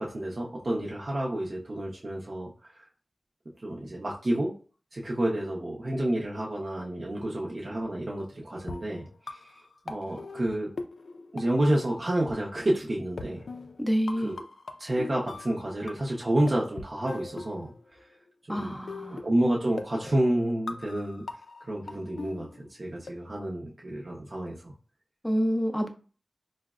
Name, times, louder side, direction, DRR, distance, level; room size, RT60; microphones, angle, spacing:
voice 1, 0.0-2.7 3.6-4.5 4.9-9.4 9.9-10.7 11.3-13.5 14.2-14.4 14.8-17.7 18.5-18.7 19.1-21.2 21.7-24.7, right 1 dB, 45° right, 0.6 m, -29 dB
sound 1, 8.6-12.0 12.3-12.4 13.2-16.2 16.5-18.1 18.9-23.1, left 3 dB, 85° left, 0.3 m, -41 dB
voice 2, 13.8-14.4 18.5-19.2 25.2-25.9, equal, 5° left, 0.4 m, -27 dB
4.4 x 2.1 x 2.3 m
wide cardioid pair, 100°, 0 cm